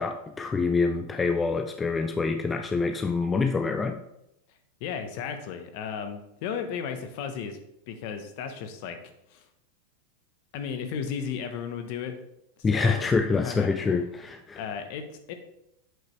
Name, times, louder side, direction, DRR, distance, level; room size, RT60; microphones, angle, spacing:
voice 1, 0.0-4.0 12.6-14.6, left 4 dB, 15° left, 7 dB, 0.3 m, -26 dB
voice 2, 4.8-7.6 7.9-9.0 9.3-9.4 10.5-12.1 12.7-13.1 13.4-13.7 14.6-15.3, left 7 dB, 50° left, 7 dB, 0.9 m, -34 dB
7.9 x 4.9 x 3.2 m, 0.83 s
supercardioid pair, 150°, 0 cm